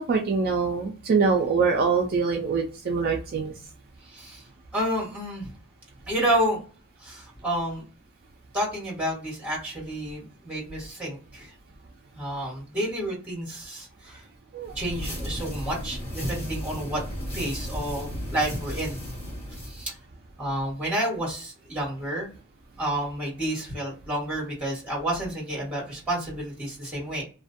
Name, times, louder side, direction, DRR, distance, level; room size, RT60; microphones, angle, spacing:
voice 1, 0.0-3.5 14.5-14.7, right 5 dB, 45° right, 1 dB, 0.3 m, -24 dB
voice 2, 4.0-4.4 4.7-5.5 6.1-6.6 7.0-7.8 8.5-11.5 12.2-14.2 14.7-17.0 17.3-19.0 19.6-19.9 20.4-22.3 22.8-27.2, right 1 dB, 5° right, -3 dB, 1.2 m, -30 dB
sound 1, 14.6-19.9, equal, 30° left, 1.0 m, -35 dB
2.4 x 2.1 x 2.5 m, 0.37 s
head